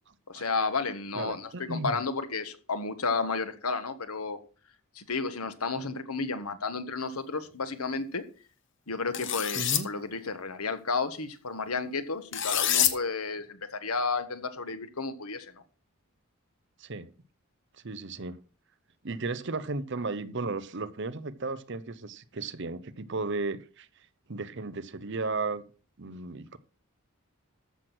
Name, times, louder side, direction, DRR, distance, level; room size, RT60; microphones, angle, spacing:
voice 1, 0.3-4.4 4.9-8.2 8.9-15.5, left 4 dB, 85° left, 1.5 m, -32 dB
voice 2, 1.1-2.0 9.5-9.9 16.8-17.1 17.8-18.4 19.0-23.9 24.3-25.6 26.0-26.6, right 3 dB, 55° right, 0.8 m, -34 dB
sound 1, 9.1-9.8 12.3-12.9, left 10 dB, 55° left, 1.2 m, -26 dB
14.0 x 6.2 x 6.1 m
head